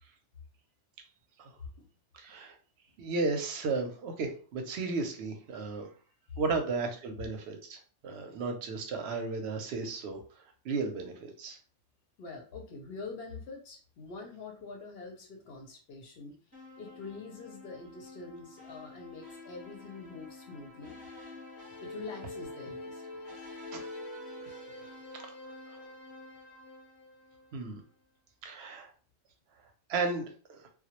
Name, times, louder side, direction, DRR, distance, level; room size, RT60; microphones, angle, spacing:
voice 1, 2.1-2.5 3.0-5.9 6.4-7.8 8.0-10.2 10.6-11.6 25.7-25.8 27.5-27.8 28.4-28.9 29.9-30.6, right 3 dB, 65° right, 5 dB, 0.7 m, -34 dB
voice 2, 12.2-16.3 16.8-21.0 21.8-23.5, left 4 dB, 60° left, 1 dB, 0.7 m, -45 dB
sound 1, 16.5-27.8, left 2 dB, 15° left, 0.6 m, -47 dB
2.2 x 2.0 x 2.8 m, 0.39 s
omnidirectional pair, 1.3 m